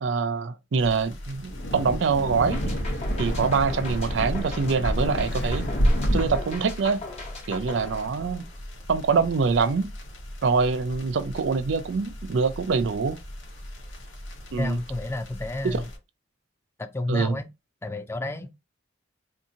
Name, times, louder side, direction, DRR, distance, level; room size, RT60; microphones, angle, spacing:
voice 1, 0.0-2.7 3.2-5.7 6.1-7.0 7.5-8.4 8.9-9.9 10.4-13.2 14.5-14.8 15.6-15.8 17.1-17.4, right 5 dB, 65° right, 0.4 m, -24 dB
sound 1, 0.8-16.0, equal, 80° left, 1.1 m, -41 dB
Wind, 1.5-6.5, equal, 60° left, 0.8 m, -27 dB
sound 2, 2.5-8.7, left 3 dB, 30° left, 1.0 m, -40 dB
voice 2, 14.6-15.9 16.8-17.5 17.8-18.5, left 2 dB, 15° left, 0.3 m, -30 dB
2.7 x 2.6 x 3.6 m
head